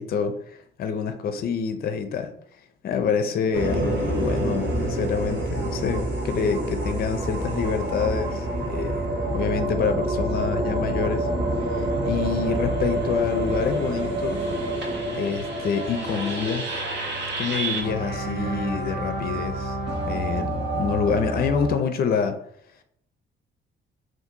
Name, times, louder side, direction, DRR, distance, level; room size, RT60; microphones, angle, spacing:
voice 1, 0.0-2.3 2.8-9.0 9.3-11.3 11.7-14.5 15.1-16.7 17.4-19.8 20.1-22.4, left 6 dB, 50° left, 8 dB, 0.5 m, -27 dB
sound 1, 3.5-21.7, right 2 dB, 65° right, 0.9 m, -27 dB
sound 2, 7.4-16.5, left 1 dB, 30° right, 0.6 m, -45 dB
2.6 x 2.5 x 3.7 m, 0.71 s
cardioid pair, 90°, 20 cm